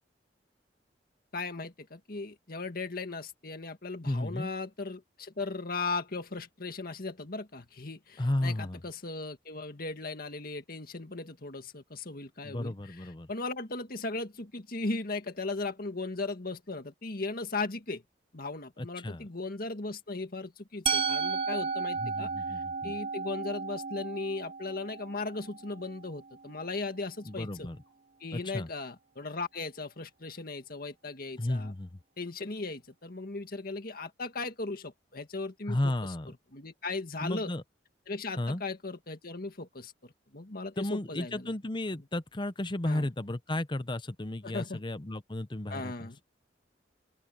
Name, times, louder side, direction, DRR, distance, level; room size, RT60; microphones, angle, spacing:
voice 1, 1.3-18.0 18.3-27.7 28.2-31.7 32.2-36.1 36.5-37.5 38.1-41.5 42.8-43.1 44.4-44.8 45.7-46.2, left 3 dB, 55° left, 1.9 m, -37 dB
voice 2, 4.0-4.5 8.2-8.8 12.4-13.3 18.8-19.3 22.0-22.9 27.2-27.8 28.3-28.7 31.4-32.0 35.7-36.3 37.2-37.6 38.4-38.6 40.8-46.1, left 1 dB, 25° left, 0.9 m, -33 dB
Musical instrument, 20.9-26.8, right 5 dB, 30° right, 1.2 m, -34 dB
open air
head